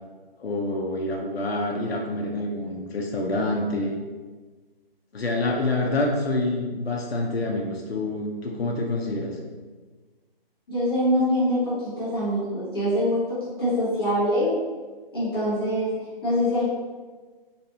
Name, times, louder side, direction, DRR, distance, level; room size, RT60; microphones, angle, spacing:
voice 1, 0.4-3.9 5.1-9.4, left 2 dB, 85° left, 0 dB, 0.7 m, -27 dB
voice 2, 10.7-13.2 13.6-14.5 15.1-16.0 16.2-16.7, equal, 25° left, -12 dB, 1.2 m, -24 dB
4.1 x 2.5 x 2.7 m, 1.4 s
hypercardioid pair, 170°, 30 cm